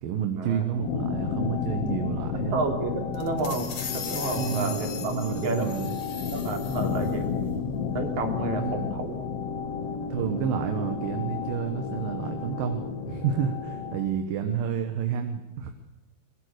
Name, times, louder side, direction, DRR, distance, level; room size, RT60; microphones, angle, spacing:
voice 1, 0.0-2.6 4.3-5.9 8.6-8.9 10.1-15.7, right 8 dB, 65° right, 6 dB, 2.7 m, -30 dB
sound 1, 0.8-14.1, left 6 dB, 80° left, 1.3 m, -32 dB
voice 2, 2.5-3.6 3.9-5.1 5.4-5.7 6.3-7.3 7.9-9.3, right 3 dB, 45° right, 3 dB, 4.2 m, -30 dB
sound 2, 3.1-7.2, left 7 dB, 50° left, 1.8 m, -38 dB
22.5 x 22.5 x 6.6 m, 1.0 s
omnidirectional pair, 4.8 m